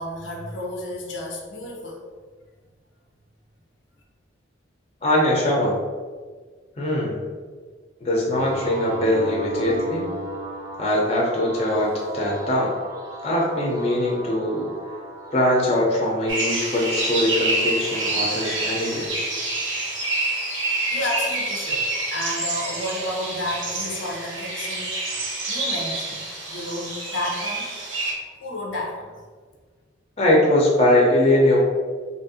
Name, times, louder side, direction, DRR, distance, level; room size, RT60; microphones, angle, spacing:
voice 1, 0.0-2.0 20.9-25.2 25.5-27.8 28.2-29.1, left 1 dB, 80° left, -1 dB, 0.8 m, -31 dB
voice 2, 5.0-5.8 6.8-7.2 8.0-10.0 10.8-12.7 13.2-14.7 15.3-19.1 30.2-31.6, left 1 dB, 30° left, -4 dB, 0.8 m, -21 dB
sound 1, 8.4-19.1, right 1 dB, 15° right, 0.6 m, -37 dB
sound 2, 16.3-28.1, right 2 dB, 85° right, 1.0 m, -27 dB
3.0 x 2.6 x 4.1 m, 1.5 s
head